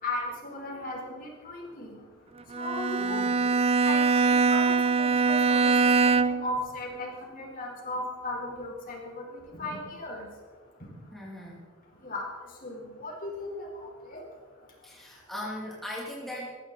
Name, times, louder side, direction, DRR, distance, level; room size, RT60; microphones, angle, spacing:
voice 1, 0.0-2.0 2.5-3.2 3.8-5.7 6.0-10.3 12.0-12.2 12.6-14.2, left 2 dB, 40° left, -1 dB, 4.3 m, -36 dB
Bowed string instrument, 2.5-6.6, right 4 dB, 25° right, 0.5 m, -23 dB
voice 2, 3.0-3.4 11.1-11.7 14.8-16.5, left 1 dB, ahead, -5 dB, 2.7 m, -39 dB
21.0 x 14.5 x 4.2 m, 1.5 s
head